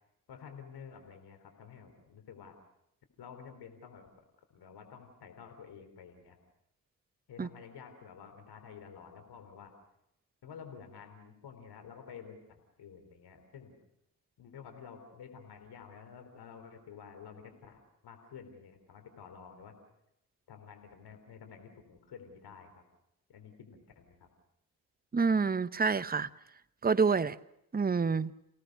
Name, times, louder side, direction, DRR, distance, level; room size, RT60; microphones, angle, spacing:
voice 1, 0.3-2.6 3.2-4.1 4.5-6.4 7.3-9.7 10.4-13.8 14.4-19.7 20.5-22.7 23.3-24.3, left 6 dB, 75° left, 3.7 m, -50 dB
voice 2, 25.1-26.3 26.8-27.4 27.7-28.3, right 5 dB, 25° right, 0.9 m, -27 dB
30.0 x 18.0 x 6.6 m
hypercardioid pair, 40°, 40 cm